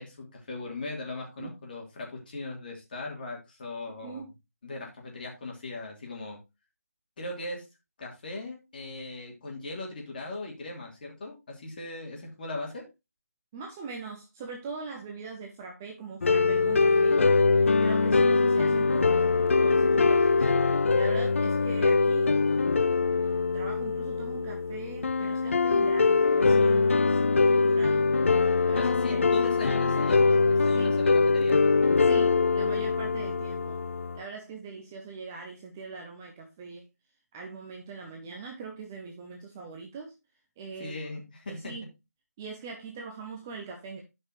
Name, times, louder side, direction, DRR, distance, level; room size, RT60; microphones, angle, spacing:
voice 1, 0.0-4.2 4.6-6.4 7.2-7.6 8.0-12.8 28.7-31.6 40.8-41.7, left 2 dB, 35° left, -1 dB, 2.9 m, -38 dB
voice 2, 13.5-17.2 17.5-28.0 28.4-29.2 29.8-31.0 32.0-33.8 34.1-36.9 37.3-40.1 40.6-41.0 41.5-41.9 42.4-44.0, right 4 dB, 10° right, 2 dB, 0.5 m, -42 dB
sound 1, 16.2-34.2, left 4 dB, 50° left, 0.3 m, -23 dB
12.0 x 5.5 x 3.0 m, 0.24 s
figure-of-eight pair, 165°, 9 cm